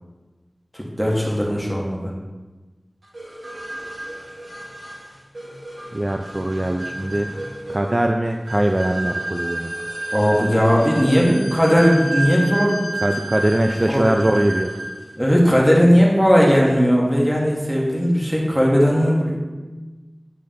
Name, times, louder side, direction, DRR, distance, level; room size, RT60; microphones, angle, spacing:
voice 1, 0.7-2.1 10.1-12.8 13.9-14.0 15.2-19.4, equal, 5° right, -3 dB, 1.8 m, -17 dB
sound 1, 3.1-15.1, right 1 dB, 75° right, 1.8 m, -31 dB
voice 2, 5.9-7.3 7.7-9.7 13.0-14.7, right 1 dB, 40° right, 4 dB, 0.4 m, -21 dB
8.9 x 5.0 x 3.8 m, 1.2 s
wide cardioid pair, 50°, 0 cm